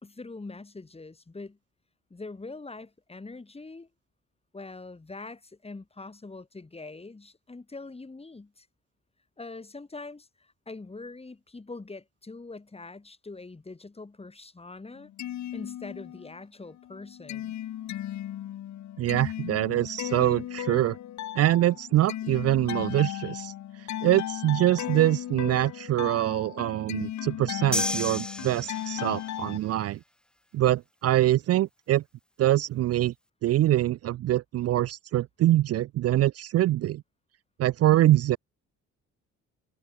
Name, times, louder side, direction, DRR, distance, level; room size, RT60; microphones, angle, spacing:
voice 1, 0.0-1.6 2.1-3.9 4.5-8.7 9.4-15.1 15.5-17.5, left 3 dB, 20° left, 3.3 m, -43 dB
sound 1, 15.0-16.4 16.7-29.6, left 12 dB, 70° left, 1.5 m, -36 dB
voice 2, 19.0-21.0 21.4-23.5 24.0-30.0 30.5-32.0 32.4-33.1 33.4-37.0 37.6-38.4, right 14 dB, 55° right, 0.4 m, -24 dB
sound 2, 27.7-29.3, equal, 5° left, 1.4 m, -31 dB
cardioid pair, 90°, 30 cm